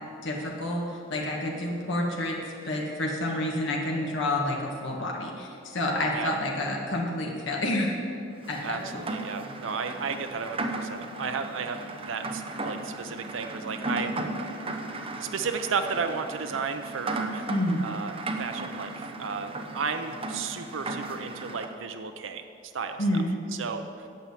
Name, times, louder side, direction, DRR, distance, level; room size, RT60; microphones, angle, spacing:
voice 1, 0.2-2.4 2.6-7.9 8.5-9.0 17.5-17.8 23.0-23.3, left 1 dB, 65° left, -1 dB, 1.6 m, -29 dB
Rain, 8.4-21.7, right 2 dB, 30° right, 0.8 m, -36 dB
voice 2, 8.6-14.5 15.2-17.5 17.8-18.1 18.4-22.4 22.7-23.2 23.5-23.8, right 5 dB, 70° right, 7 dB, 0.6 m, -33 dB
9.1 x 7.4 x 8.3 m, 2.5 s
head